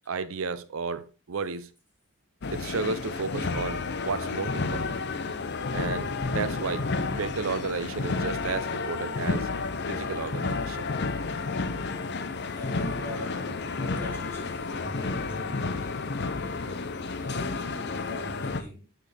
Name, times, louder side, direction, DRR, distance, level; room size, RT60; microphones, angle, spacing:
voice 1, 0.1-1.7 2.5-5.0 5.7-9.5 9.9-10.9, right 4 dB, 75° right, 0.6 m, -33 dB
sound 1, 2.4-18.6, left 3 dB, 55° left, 0.7 m, -31 dB
voice 2, 12.5-18.9, equal, 10° left, 3.4 m, -42 dB
8.7 x 6.5 x 3.4 m
head